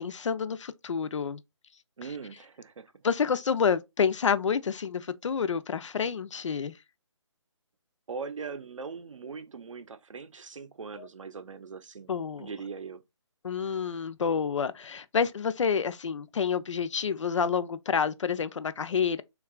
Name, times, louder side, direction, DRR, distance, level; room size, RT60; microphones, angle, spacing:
voice 1, 0.0-1.4 3.0-6.7 11.0-11.1 12.1-12.5 13.4-19.2, left 6 dB, 75° left, 0.4 m, -28 dB
voice 2, 2.0-2.9 8.1-12.1 12.4-13.0, right 5 dB, 85° right, 0.6 m, -40 dB
3.6 x 2.3 x 2.3 m
hypercardioid pair, 180°, 16 cm